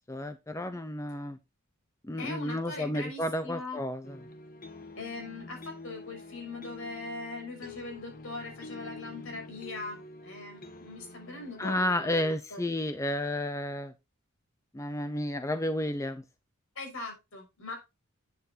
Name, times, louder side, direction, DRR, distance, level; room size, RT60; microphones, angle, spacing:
voice 1, 0.1-1.4 2.1-4.2 11.6-13.9 14.7-16.2, left 1 dB, 15° left, 9 dB, 0.6 m, -31 dB
voice 2, 2.2-3.8 5.0-12.7 16.7-17.8, left 3 dB, 70° left, 2 dB, 6.0 m, -41 dB
sound 1, 4.0-11.7, left 2 dB, 40° left, 1.1 m, -47 dB
11.5 x 9.6 x 2.8 m, 0.25 s
head